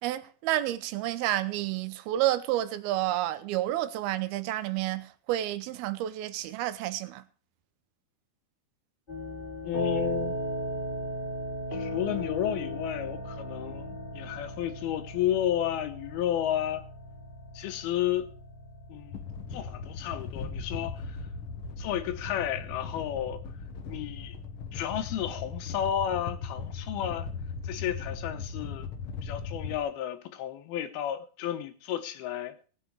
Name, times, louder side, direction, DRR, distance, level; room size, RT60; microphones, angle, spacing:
voice 1, 0.0-7.2, right 14 dB, 85° right, 2.7 m, -30 dB
sound 1, 9.1-27.1, equal, 15° left, 2.6 m, -38 dB
voice 2, 9.6-10.4 11.7-16.8 17.5-18.3 18.9-19.2 19.5-21.2 21.8-23.4 23.9-24.4 24.7-27.3 27.6-28.9 29.2-32.6, left 11 dB, 85° left, 3.0 m, -32 dB
sound 2, 19.1-29.8, left 4 dB, 65° left, 1.4 m, -38 dB
18.5 x 7.6 x 4.6 m
omnidirectional pair, 4.3 m